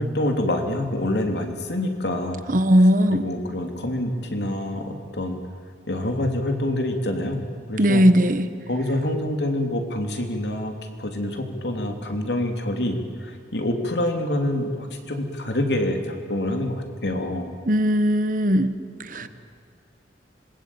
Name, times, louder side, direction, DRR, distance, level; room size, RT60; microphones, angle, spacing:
voice 1, 0.0-2.4 3.1-5.4 5.9-7.4 7.7-8.0 8.7-10.7 11.0-17.5 19.2-19.3, left 1 dB, 70° left, 4 dB, 3.2 m, -26 dB
voice 2, 2.5-3.3 7.8-8.5 17.7-18.7 19.0-19.3, equal, 50° right, 11 dB, 1.3 m, -18 dB
26.0 x 21.0 x 8.8 m, 2.3 s
head